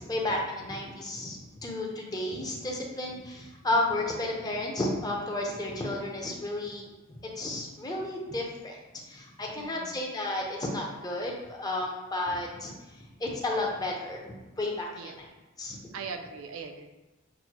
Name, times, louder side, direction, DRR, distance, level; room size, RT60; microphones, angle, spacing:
voice 1, 0.0-8.8 9.1-15.3 15.6-15.8, left 1 dB, 20° left, -1 dB, 0.6 m, -32 dB
voice 2, 9.6-10.0 14.9-15.2 15.9-16.9, right 5 dB, 70° right, 6 dB, 0.4 m, -40 dB
6.0 x 2.1 x 2.9 m, 1.1 s
head